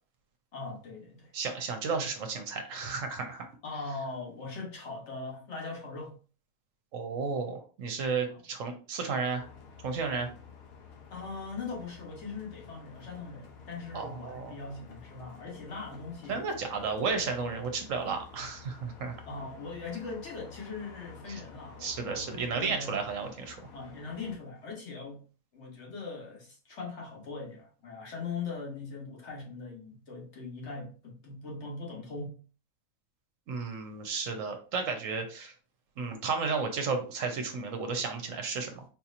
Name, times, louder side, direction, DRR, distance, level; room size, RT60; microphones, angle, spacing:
voice 1, 0.5-1.3 3.6-6.2 8.3-8.4 11.1-16.4 19.3-23.0 23.7-25.2 25.5-32.4, left 4 dB, 55° left, 1.2 m, -40 dB
voice 2, 1.3-3.5 6.9-9.5 9.8-10.3 13.9-14.5 16.3-19.2 21.3-21.4 21.8-23.6 33.5-35.5 36.0-38.8, right 4 dB, 65° right, 1.0 m, -33 dB
sound 1, 9.4-24.4, left 5 dB, 75° left, 1.3 m, -51 dB
4.2 x 2.8 x 2.4 m
omnidirectional pair, 1.5 m